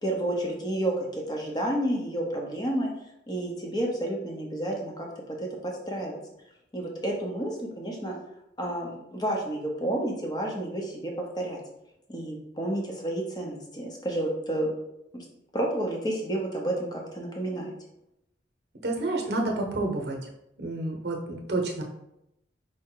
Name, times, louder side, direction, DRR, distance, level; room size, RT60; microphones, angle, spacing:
voice 1, 0.0-2.9 3.3-5.4 5.6-6.2 6.7-8.1 8.6-11.6 12.1-14.7 15.1-15.2 15.5-17.7, right 1 dB, 25° left, 0 dB, 0.8 m, -30 dB
voice 2, 18.8-20.2 20.6-21.8, right 2 dB, 60° right, 1 dB, 0.8 m, -29 dB
4.9 x 2.2 x 4.5 m, 0.84 s
head